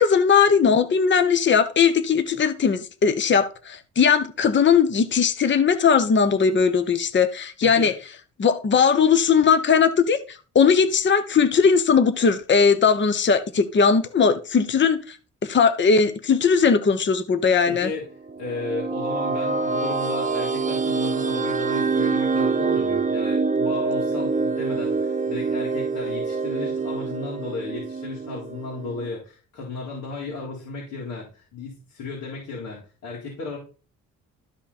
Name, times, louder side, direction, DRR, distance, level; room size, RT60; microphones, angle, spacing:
voice 1, 0.0-7.9 8.4-15.2 15.4-17.9, left 6 dB, 40° left, 1.0 m, -19 dB
voice 2, 7.6-7.9 17.7-18.0 18.4-33.6, left 3 dB, 80° left, 4.1 m, -34 dB
sound 1, 18.3-29.1, right 4 dB, 25° right, 0.9 m, -25 dB
13.0 x 5.1 x 4.3 m
cardioid pair, 90°, 30 cm